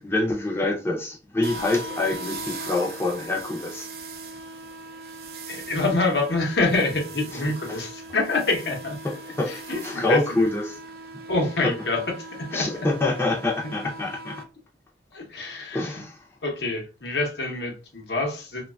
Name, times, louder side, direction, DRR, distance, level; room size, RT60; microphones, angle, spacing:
voice 1, 0.0-3.9 7.3-7.4 7.7-7.8 9.4-9.5 9.8-10.6 11.6-11.7 12.5-14.4 15.7-16.2, left 2 dB, 15° left, 0.5 m, -26 dB
sound 1, 1.4-14.4, right 2 dB, 55° right, 0.4 m, -39 dB
voice 2, 5.5-8.9 9.5-10.5 11.3-12.7 13.8-13.9 15.1-16.0 16.4-18.7, left 2 dB, 75° left, 0.8 m, -26 dB
3.0 x 2.2 x 2.3 m
head